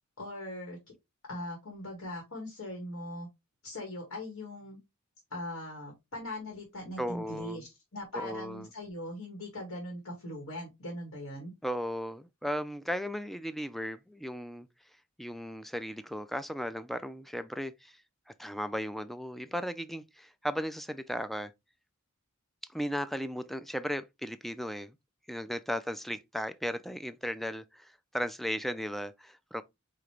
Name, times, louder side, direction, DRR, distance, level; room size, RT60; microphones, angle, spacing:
voice 1, 0.2-0.8 1.3-3.3 3.6-4.8 5.3-11.5, left 1 dB, 75° left, 2.0 m, -40 dB
voice 2, 7.0-7.7 8.1-8.7 11.6-14.7 15.2-18.0 18.4-21.5 22.7-25.0 25.3-29.6, equal, ahead, 0.3 m, -36 dB
5.1 x 2.9 x 3.1 m
head